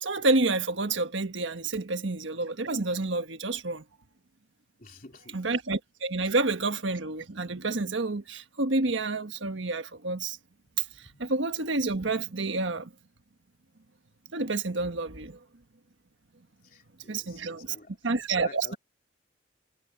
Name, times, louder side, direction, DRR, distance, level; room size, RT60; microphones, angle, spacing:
voice 1, 0.0-3.8 5.3-10.4 10.8-10.9 11.2-12.9 14.3-15.4 17.1-17.7 18.0-18.7, right 3 dB, 80° right, 1.4 m, -29 dB
voice 2, 4.8-5.4 11.0-11.3 16.6-17.9 18.3-18.8, left 3 dB, 45° left, 3.3 m, -49 dB
head